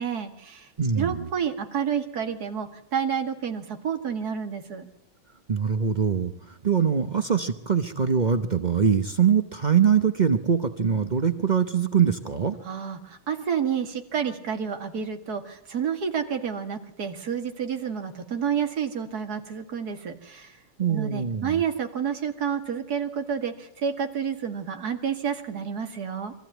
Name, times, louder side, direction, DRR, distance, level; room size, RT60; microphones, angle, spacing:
voice 1, 0.0-0.7 1.0-4.9 12.6-20.6 20.9-26.3, right 7 dB, 50° right, 5 dB, 2.5 m, -29 dB
voice 2, 0.8-1.3 5.5-12.6 20.8-21.6, right 7 dB, 80° right, 9 dB, 0.4 m, -23 dB
24.0 x 14.5 x 9.2 m, 0.87 s
omnidirectional pair, 2.3 m